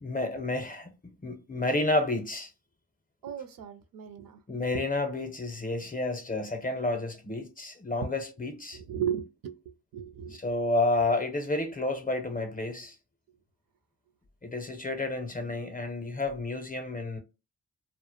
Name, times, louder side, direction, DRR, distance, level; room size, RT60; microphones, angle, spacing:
voice 1, 0.0-2.5 4.5-8.8 10.3-13.0 14.4-17.2, left 2 dB, 20° left, 0.6 m, -30 dB
voice 2, 3.2-4.4 8.7-9.6 9.9-10.4, right 9 dB, 60° right, 0.5 m, -35 dB
2.1 x 2.0 x 2.9 m
supercardioid pair, 55°, 39 cm